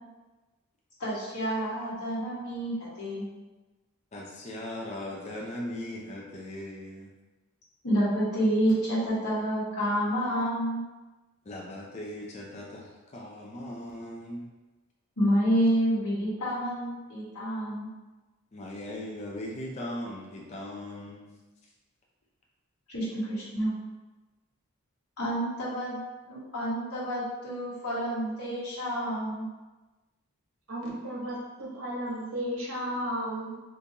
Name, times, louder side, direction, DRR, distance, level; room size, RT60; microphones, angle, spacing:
voice 1, 1.0-3.3 7.8-10.8 15.2-17.9 22.9-23.7 25.2-26.0 26.2-29.5, equal, 85° left, -9 dB, 1.3 m, -28 dB
voice 2, 4.1-7.1 11.5-14.5 18.5-21.3, left 1 dB, 30° left, -3 dB, 0.4 m, -39 dB
voice 3, 30.7-33.5, equal, 65° right, -4 dB, 0.9 m, -34 dB
3.7 x 2.5 x 2.8 m, 1.2 s
head